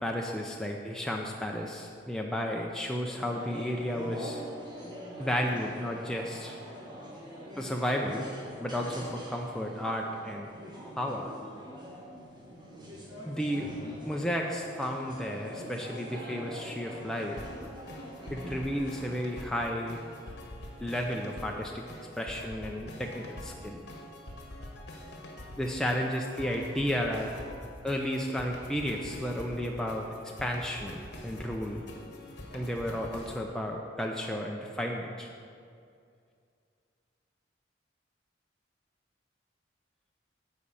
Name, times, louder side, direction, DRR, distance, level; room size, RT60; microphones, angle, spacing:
voice 1, 0.0-4.4 5.2-6.6 7.6-8.3 8.6-10.5 11.0-11.3 13.2-13.7 14.1-17.4 18.3-20.0 20.8-21.8 22.2-23.8 25.6-27.3 27.8-30.1 30.4-31.8 32.5-35.3, equal, 5° left, 0 dB, 0.4 m, -33 dB
sound 1, 3.1-19.1, equal, 25° right, 1.5 m, -44 dB
sound 2, 17.4-33.4, left 1 dB, 60° left, 1.3 m, -45 dB
10.0 x 4.2 x 6.9 m, 2.3 s
head